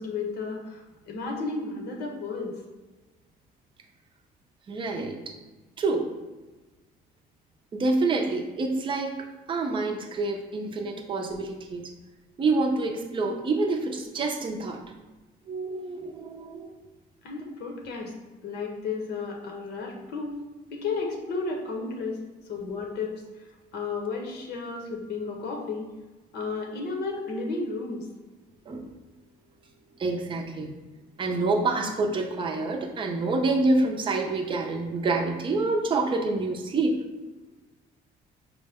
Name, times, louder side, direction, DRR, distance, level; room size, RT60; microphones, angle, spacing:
voice 1, 0.0-2.6 17.2-18.1 18.4-20.4 20.7-22.2 22.5-23.1 23.7-25.9 26.3-28.0, left 4 dB, 75° left, 1 dB, 0.8 m, -33 dB
voice 2, 4.7-5.3 5.8-6.1 7.7-11.8 12.4-14.8 15.5-16.7 28.7-28.9 30.0-30.7 31.2-37.0, right 3 dB, 30° right, 3 dB, 0.5 m, -27 dB
4.5 x 2.1 x 3.5 m, 1.2 s
cardioid pair, 110°, 17 cm